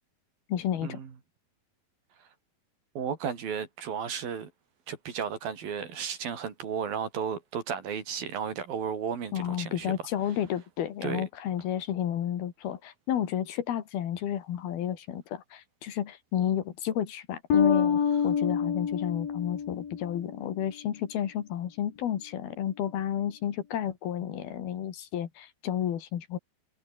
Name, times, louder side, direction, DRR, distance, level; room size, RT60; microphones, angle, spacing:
voice 1, 0.5-1.0 9.3-26.4, left 10 dB, 90° left, 4.1 m, -31 dB
voice 2, 3.0-4.5 4.9-9.9 11.0-11.2, right 7 dB, 75° right, 5.2 m, -34 dB
Bass guitar, 17.5-20.5, left 7 dB, 70° left, 5.1 m, -27 dB
omnidirectional pair, 4.2 m